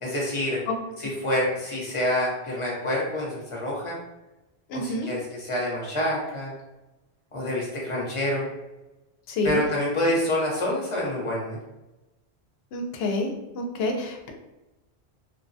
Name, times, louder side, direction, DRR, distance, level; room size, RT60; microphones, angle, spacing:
voice 1, 0.0-0.6 1.0-4.0 4.7-6.5 7.3-8.4 9.4-11.6, left 1 dB, 30° left, -4 dB, 0.9 m, -27 dB
voice 2, 4.7-5.1 9.3-9.6 12.7-14.3, left 2 dB, 70° left, 3 dB, 0.8 m, -28 dB
3.1 x 2.2 x 2.6 m, 0.99 s
omnidirectional pair, 1.1 m